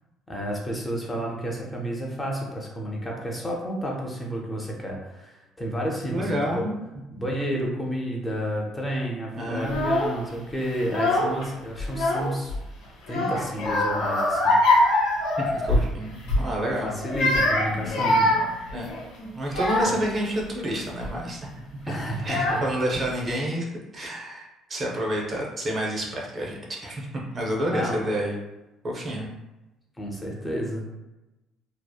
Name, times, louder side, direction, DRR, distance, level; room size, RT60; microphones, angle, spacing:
voice 1, 0.3-6.6 7.1-12.5 13.1-15.1 15.8-15.9 16.8-18.3 21.9-22.6 27.7-28.0 30.0-30.9, equal, 15° left, -2 dB, 0.5 m, -31 dB
voice 2, 6.1-6.8 9.4-9.9 15.4-16.9 18.7-18.9 19.3-21.5 21.8-21.9 22.2-28.3 28.8-29.3, right 1 dB, 35° right, -2 dB, 0.6 m, -29 dB
Child speech kid speaking / Crying sobbing, 9.6-10.2 10.8-11.5 11.8-12.6 13.1-15.9 16.2-16.5 17.0-20.1 20.8-21.1 21.9-22.0 22.3-23.0, left 1 dB, 75° left, 0.7 m, -23 dB
2.7 x 2.0 x 2.2 m, 1.0 s
cardioid pair, 115°, 0 cm